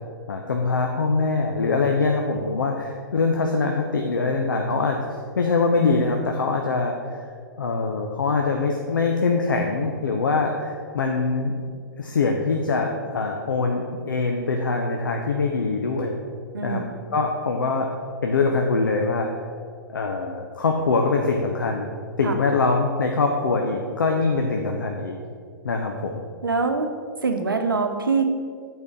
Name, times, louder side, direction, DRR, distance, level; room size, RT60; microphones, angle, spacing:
voice 1, 0.3-5.0 5.4-7.2 7.6-11.6 12.0-16.2 16.6-16.9 17.1-17.9 18.2-19.3 19.9-21.9 22.2-25.2 25.6-26.2, left 3 dB, 65° left, 2 dB, 0.7 m, -23 dB
voice 2, 26.4-26.9 27.2-28.3, right 4 dB, 75° right, 6 dB, 0.8 m, -23 dB
8.3 x 4.5 x 5.0 m, 2.1 s
figure-of-eight pair, 115°, 11 cm